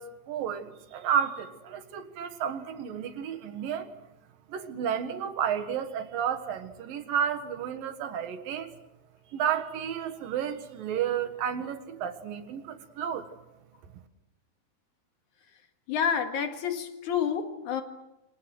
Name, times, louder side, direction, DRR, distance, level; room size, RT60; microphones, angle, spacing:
voice 1, 0.0-3.9 4.5-8.7 9.3-13.3, right 8 dB, 85° right, 8 dB, 3.4 m, -32 dB
voice 2, 15.9-17.8, left 7 dB, 65° left, 6 dB, 3.1 m, -29 dB
27.5 x 26.0 x 6.3 m, 0.93 s
omnidirectional pair, 3.9 m